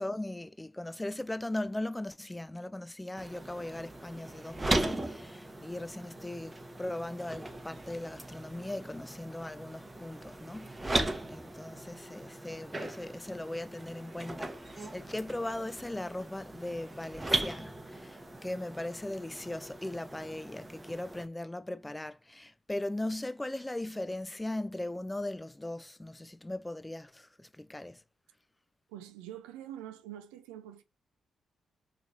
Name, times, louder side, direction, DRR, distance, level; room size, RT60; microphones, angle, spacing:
voice 1, 0.0-28.0, left 1 dB, 15° left, 0.3 m, -39 dB
sound 1, 3.2-21.3, right 2 dB, 25° right, 0.7 m, -38 dB
voice 2, 28.9-30.8, right 11 dB, 85° right, 0.3 m, -45 dB
3.0 x 2.8 x 2.5 m
hypercardioid pair, 45°, 0 cm